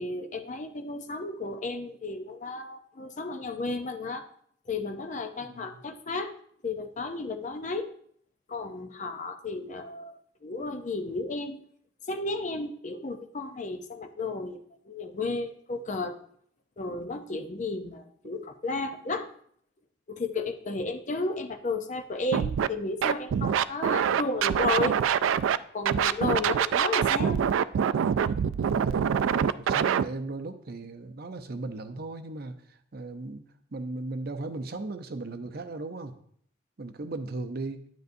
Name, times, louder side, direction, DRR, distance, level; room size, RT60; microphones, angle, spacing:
voice 1, 0.0-4.3 4.7-6.3 6.6-7.9 8.5-11.6 12.1-16.2 16.8-19.3 20.1-25.0 25.7-27.5, left 3 dB, 40° left, 8 dB, 0.6 m, -33 dB
voice 2, 5.4-5.8 26.2-26.4 28.7-33.4 33.7-36.2 36.8-37.9, right 2 dB, 50° right, 8 dB, 0.6 m, -37 dB
Scratching (performance technique), 22.3-22.7 23.0-25.6 25.8-30.0, right 8 dB, 85° right, 0.3 m, -25 dB
9.3 x 9.2 x 2.6 m, 0.64 s
head